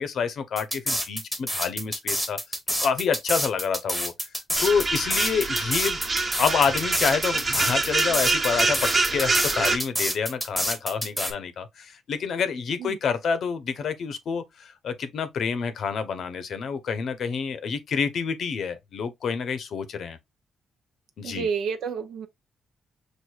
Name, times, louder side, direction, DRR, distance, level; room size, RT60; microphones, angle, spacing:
voice 1, 0.0-2.4 2.8-4.1 4.6-6.0 6.4-20.2 21.2-21.5, left 6 dB, 55° left, 0.7 m, -28 dB
sound 1, 0.6-11.3, equal, ahead, 0.9 m, -27 dB
sound 2, 4.6-9.8, right 3 dB, 30° right, 1.1 m, -26 dB
voice 2, 21.2-22.3, right 6 dB, 75° right, 0.6 m, -29 dB
6.2 x 2.6 x 2.4 m
cardioid pair, 145°, 0 cm